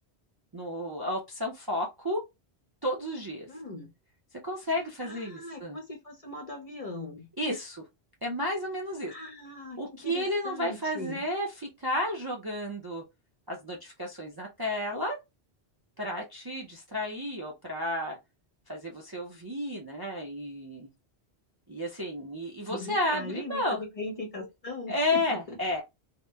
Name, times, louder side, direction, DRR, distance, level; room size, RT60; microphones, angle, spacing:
voice 1, 0.5-2.2 2.8-3.5 4.4-5.8 7.4-7.8 8.2-9.1 9.8-13.0 13.5-15.2 16.0-18.2 18.7-20.9 21.7-23.8 24.3-24.5 24.9-25.8, left 1 dB, 35° right, 0.4 m, -32 dB
voice 2, 3.5-3.9 5.0-7.3 9.1-11.2 22.7-25.6, left 2 dB, 45° left, 0.5 m, -40 dB
2.8 x 2.0 x 2.2 m
omnidirectional pair, 1.1 m